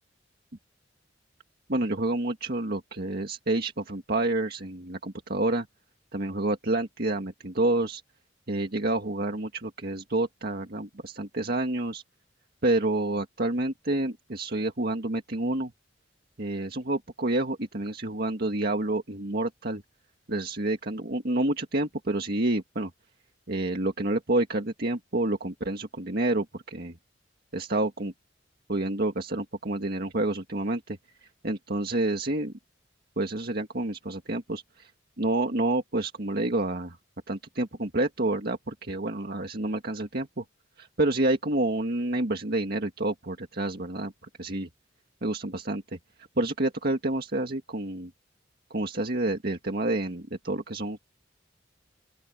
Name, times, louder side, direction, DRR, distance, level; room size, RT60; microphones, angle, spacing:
voice 1, 1.7-5.7 6.1-8.0 8.5-12.0 12.6-15.7 16.4-19.8 20.3-22.9 23.5-27.0 27.5-28.1 28.7-32.5 33.2-34.9 35.2-37.0 37.3-40.4 40.8-44.1 44.4-44.7 45.2-46.0 46.4-48.1 48.7-51.0, right 2 dB, 55° right, 1.9 m, -28 dB
open air
head